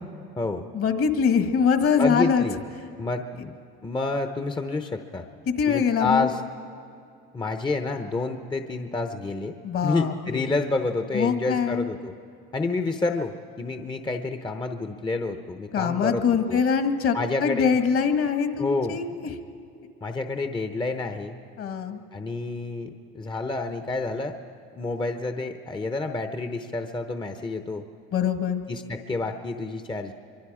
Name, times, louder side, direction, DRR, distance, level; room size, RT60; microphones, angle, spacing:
voice 1, 0.7-2.4 5.5-6.3 9.6-10.5 11.1-11.9 15.7-19.3 21.6-22.0 28.1-28.6, left 6 dB, 50° left, 8 dB, 1.7 m, -23 dB
voice 2, 2.0-2.6 3.0-3.5 3.8-5.2 5.7-6.4 7.3-9.5 9.8-12.1 12.5-16.6 17.1-17.7 18.6-19.0 20.0-21.4 22.1-24.4 24.7-27.8 28.7-30.1, left 3 dB, 15° left, 7 dB, 0.9 m, -29 dB
24.0 x 24.0 x 5.0 m, 2.5 s
supercardioid pair, 100°, 30 cm